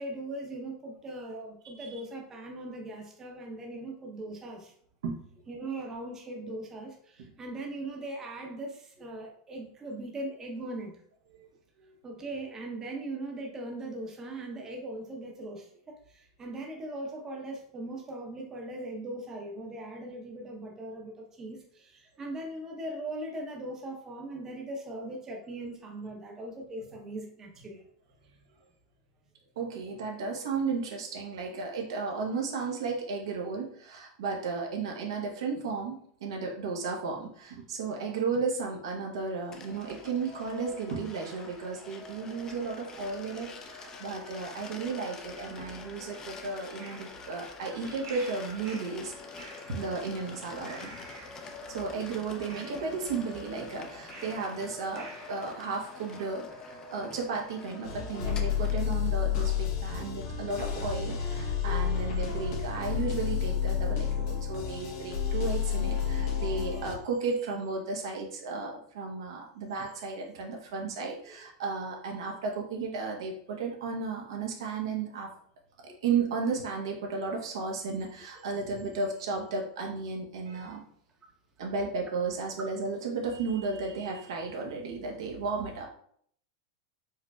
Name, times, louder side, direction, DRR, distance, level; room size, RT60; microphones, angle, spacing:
voice 1, 0.0-4.7 5.5-10.9 12.0-27.8 47.2-47.3 60.4-60.5 66.0-66.1 75.9-76.0 80.4-80.5, right 1 dB, 20° right, 1 dB, 0.8 m, -40 dB
voice 2, 1.6-2.0 5.0-5.2 11.3-11.5 29.6-50.9 51.7-75.3 75.8-80.8 81.6-85.9, right 4 dB, 80° right, 0 dB, 0.9 m, -34 dB
sound 1, 39.5-59.0, left 4 dB, 25° left, 0.6 m, -46 dB
sound 2, 46.1-56.3, right 3 dB, 55° right, 1.5 m, -51 dB
sound 3, 57.8-67.0, left 8 dB, 70° left, 1.0 m, -30 dB
4.7 x 3.1 x 2.3 m, 0.63 s
supercardioid pair, 125°, 2 cm